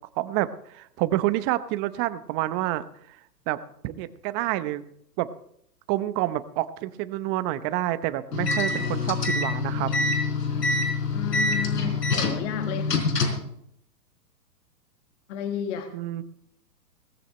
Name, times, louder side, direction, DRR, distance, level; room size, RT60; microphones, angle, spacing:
voice 1, 0.2-2.8 3.5-3.6 3.8-4.8 5.2-5.3 5.9-9.9 15.9-16.2, right 15 dB, 25° right, 14 dB, 0.8 m, -28 dB
sound 1, 8.3-13.5, left 3 dB, 75° left, 4.3 m, -25 dB
voice 2, 11.1-12.9 15.3-15.9, left 9 dB, 45° left, 6 dB, 1.8 m, -32 dB
18.5 x 15.0 x 3.2 m, 0.69 s
hypercardioid pair, 125°, 49 cm